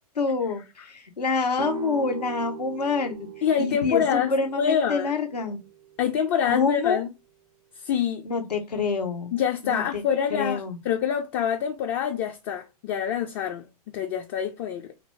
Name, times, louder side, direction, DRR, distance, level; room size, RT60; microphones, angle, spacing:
voice 1, 0.1-3.2 3.6-5.6 6.5-7.0 8.2-9.3 9.6-10.0 10.3-10.8, left 4 dB, 90° left, 0.9 m, -27 dB
sound 1, 1.6-7.3, right 10 dB, 70° right, 0.6 m, -41 dB
voice 2, 3.4-5.1 6.0-7.1 7.8-8.2 9.3-13.7 13.9-14.9, left 8 dB, 40° left, 0.4 m, -26 dB
2.8 x 2.6 x 3.0 m
hypercardioid pair, 115°, 20 cm